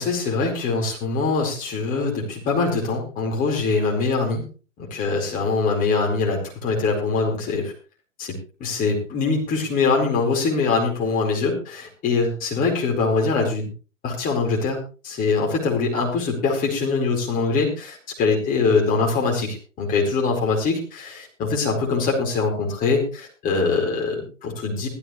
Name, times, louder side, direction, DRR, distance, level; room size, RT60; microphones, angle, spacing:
voice 1, 0.0-4.4 4.9-7.7 8.2-13.7 14.0-14.8 15.0-24.9, left 4 dB, 20° left, -1 dB, 4.6 m, -23 dB
15.5 x 14.0 x 3.3 m, 0.35 s
figure-of-eight pair, 125°, 39 cm